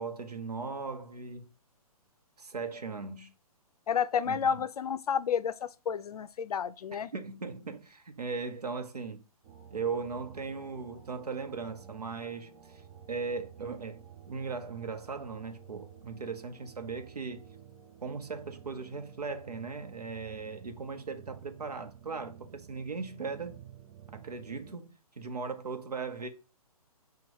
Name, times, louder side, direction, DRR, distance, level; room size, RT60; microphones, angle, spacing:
voice 1, 0.0-1.5 2.4-3.3 4.2-4.5 7.1-9.2 9.7-12.8 13.1-17.4 18.0-23.6 24.1-26.3, right 4 dB, 85° right, 0.8 m, -38 dB
voice 2, 3.9-7.1, left 7 dB, 75° left, 0.4 m, -30 dB
sound 1, 9.4-24.7, right 8 dB, 30° right, 0.6 m, -52 dB
6.0 x 2.3 x 3.0 m
figure-of-eight pair, 130°, 20 cm